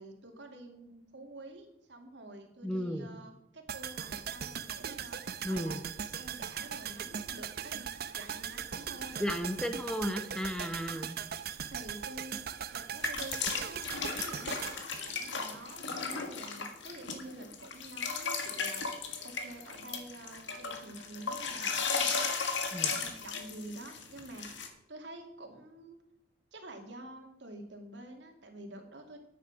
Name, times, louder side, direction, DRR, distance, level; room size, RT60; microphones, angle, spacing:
voice 1, 0.0-5.2 5.5-5.8 6.2-9.4 11.7-22.4 22.8-26.0 26.5-29.2, right 1 dB, 70° right, 3 dB, 2.3 m, -48 dB
voice 2, 2.6-3.1 5.4-5.8 9.2-11.2 22.7-22.9, equal, 5° left, 8 dB, 0.7 m, -34 dB
sound 1, 3.7-15.9 16.1-16.2, right 8 dB, 55° right, 0.7 m, -40 dB
sound 2, 13.0-24.7, left 5 dB, 80° left, 1.7 m, -35 dB
9.6 x 9.3 x 6.3 m, 0.83 s
head